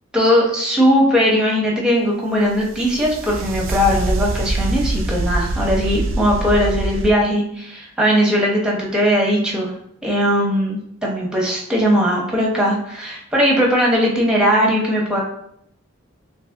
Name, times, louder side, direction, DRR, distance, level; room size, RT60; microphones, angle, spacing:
voice 1, 0.1-9.7 10.0-15.2, equal, 5° right, -3 dB, 0.8 m, -19 dB
sound 1, 2.5-7.1, right 2 dB, 70° right, 0.4 m, -24 dB
3.0 x 2.5 x 3.3 m, 0.70 s
head